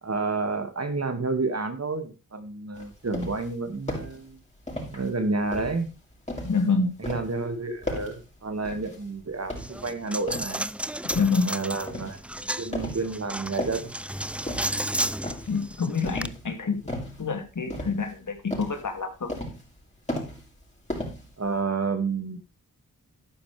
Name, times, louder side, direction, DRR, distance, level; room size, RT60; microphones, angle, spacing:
voice 1, 0.0-4.4 4.9-5.9 7.1-10.7 11.4-12.2 12.6-13.9 21.4-22.4, right 3 dB, 50° right, 8 dB, 2.3 m, -30 dB
sound 1, 2.8-3.5 3.9-4.2 4.7-5.1 5.5-6.7 7.0-7.4 7.8-8.2 8.6-9.1 9.5-10.6 11.1-11.4 11.9-12.2 12.7-13.1 13.4-14.0 14.5-14.9 15.2-15.6 16.0-16.5 16.9-17.3 17.7-18.2 18.5-18.8 19.3-19.8 20.1-20.6 20.9-21.6, left 1 dB, 20° left, 6.0 m, -35 dB
voice 2, 6.4-6.9 11.1-11.5 15.5-16.9 17.2-19.3, left 4 dB, 65° left, 6 dB, 2.8 m, -27 dB
Coin (dropping), 9.6-16.3, right 1 dB, 5° right, 0.5 m, -33 dB
12.0 x 9.9 x 3.5 m, 0.29 s
cardioid pair, 70°, 33 cm